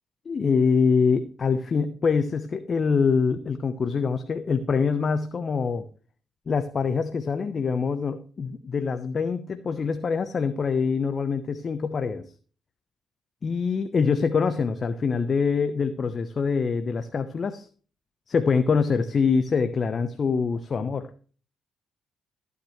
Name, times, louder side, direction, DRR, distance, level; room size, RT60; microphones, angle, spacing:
voice 1, 0.2-5.8 6.5-12.2 13.4-17.7 18.3-21.1, left 5 dB, 50° left, 10 dB, 1.0 m, -24 dB
14.5 x 9.6 x 3.2 m, 0.40 s
hypercardioid pair, 50°, 0 cm